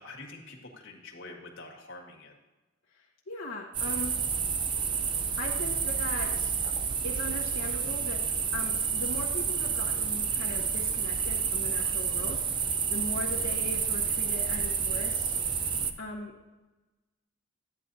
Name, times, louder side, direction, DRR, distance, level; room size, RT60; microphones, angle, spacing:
voice 1, 0.0-2.3, left 2 dB, 65° left, -1 dB, 1.8 m, -46 dB
voice 2, 3.3-4.1 5.4-6.5 7.0-8.2 8.5-15.3 16.0-16.3, left 1 dB, 90° left, -4 dB, 1.3 m, -39 dB
sound 1, 3.7-15.9, right 6 dB, 25° right, 0.4 m, -29 dB
13.5 x 9.4 x 2.7 m, 1.1 s
head